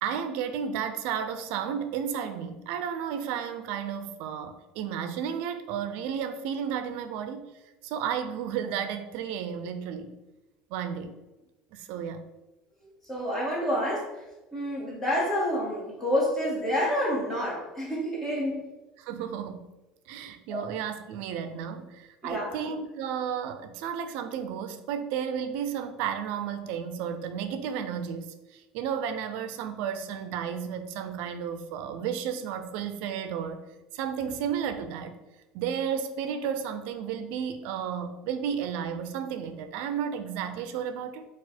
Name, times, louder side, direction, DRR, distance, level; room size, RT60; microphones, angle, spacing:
voice 1, 0.0-7.5 7.8-10.1 10.7-11.1 11.7-12.2 19.0-19.6 20.1-33.6 33.9-35.2 35.5-41.3, right 8 dB, 70° right, 9 dB, 0.4 m, -33 dB
voice 2, 13.1-14.1 14.5-18.6 20.5-20.6 22.2-22.6, equal, 10° left, -5 dB, 1.4 m, -28 dB
4.2 x 2.4 x 4.3 m, 1.1 s
cardioid pair, 155°, 3 cm